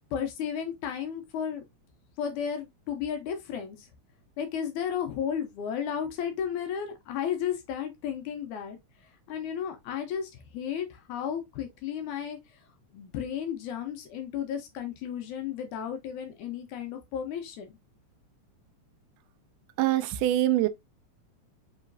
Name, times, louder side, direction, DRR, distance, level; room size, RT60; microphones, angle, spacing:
voice 1, 0.1-1.6 2.2-3.9 4.4-8.8 9.3-12.4 12.9-17.8, left 8 dB, 80° left, 2.2 m, -33 dB
voice 2, 19.8-20.7, right 14 dB, 90° right, 2.1 m, -24 dB
5.5 x 3.0 x 2.5 m
omnidirectional pair, 3.5 m